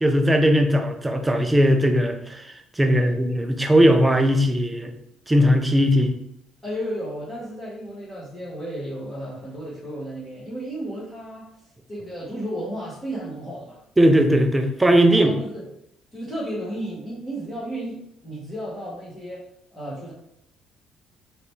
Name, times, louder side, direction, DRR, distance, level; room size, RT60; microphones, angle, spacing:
voice 1, 0.0-2.5 2.8-4.9 5.3-6.1 14.0-15.4, equal, 10° right, 5 dB, 0.4 m, -18 dB
voice 2, 2.8-3.2 6.6-11.4 11.9-13.8 15.1-15.7 16.1-19.4 19.7-20.1, right 1 dB, 10° left, -11 dB, 1.3 m, -33 dB
4.9 x 3.3 x 3.1 m, 0.75 s
cardioid pair, 170°, 0 cm